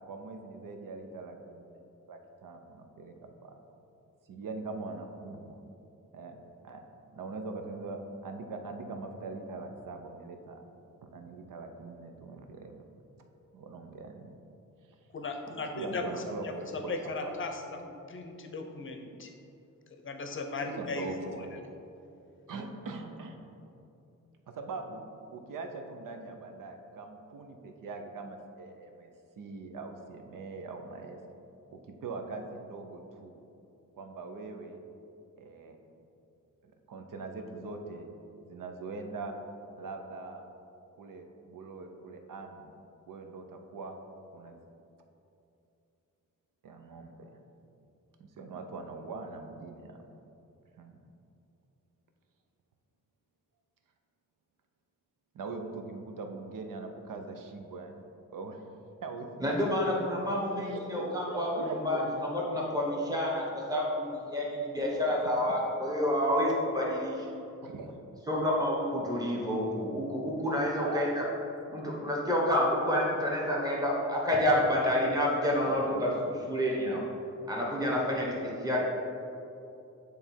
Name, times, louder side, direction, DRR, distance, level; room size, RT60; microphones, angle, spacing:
voice 1, 0.0-1.8 2.1-3.5 4.3-5.6 6.1-6.8 7.1-10.6 11.0-12.8 13.5-14.3 15.5-16.9 17.2-17.3 20.7-21.5 22.5-23.5 24.5-25.0 25.3-31.2 31.7-33.4 33.9-34.8 35.4-35.8 36.6-38.1 38.4-39.4 39.8-40.4 41.0-42.7 43.1-44.0 44.3-44.6 46.6-47.4 48.2-50.0 50.8-51.0 55.3-58.0 58.3-58.6 59.0-59.5 60.7-62.0 67.6-67.9 70.8-71.1, right 3 dB, 85° right, 4 dB, 0.7 m, -42 dB
voice 2, 15.1-16.0 16.4-19.3 20.0-21.5, left 3 dB, 40° left, 4 dB, 0.6 m, -37 dB
voice 3, 59.4-67.3 68.3-71.2 71.7-77.1 77.5-78.8, left 1 dB, 10° right, -4 dB, 1.1 m, -29 dB
9.1 x 3.4 x 4.4 m, 2.8 s
wide cardioid pair, 175°, 32 cm